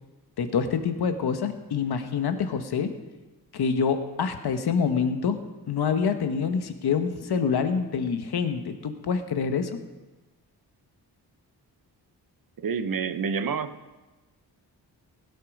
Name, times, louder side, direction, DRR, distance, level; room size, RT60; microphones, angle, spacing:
voice 1, 0.4-2.9 3.5-5.4 5.7-9.7, left 6 dB, 70° left, 8 dB, 1.2 m, -26 dB
voice 2, 12.6-14.0, right 6 dB, 60° right, 11 dB, 0.9 m, -29 dB
17.0 x 8.3 x 5.3 m, 1.1 s
cardioid pair, 95°, 40 cm